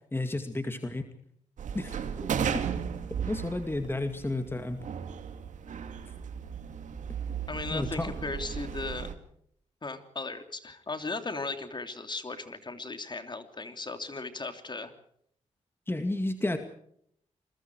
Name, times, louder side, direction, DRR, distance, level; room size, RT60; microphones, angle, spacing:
voice 1, 0.1-1.1 1.7-2.6 3.3-4.8 7.7-8.1 15.9-16.6, left 2 dB, 20° left, 7 dB, 2.3 m, -32 dB
sound 1, 1.6-9.1, right 7 dB, 85° right, 2.4 m, -35 dB
voice 2, 7.5-9.1 9.8-14.9, left 3 dB, 35° left, 8 dB, 3.1 m, -37 dB
28.5 x 22.0 x 4.7 m, 0.68 s
cardioid pair, 65°, 13 cm